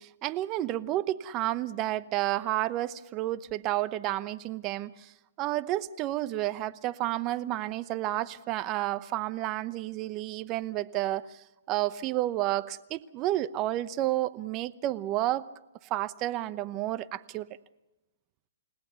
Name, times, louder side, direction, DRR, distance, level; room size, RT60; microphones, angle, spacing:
voice 1, 0.0-5.1 5.4-15.4 15.9-17.5, right 15 dB, 30° right, 15 dB, 0.8 m, -31 dB
30.0 x 17.5 x 6.9 m, 1.0 s
hypercardioid pair, 140°, 0 cm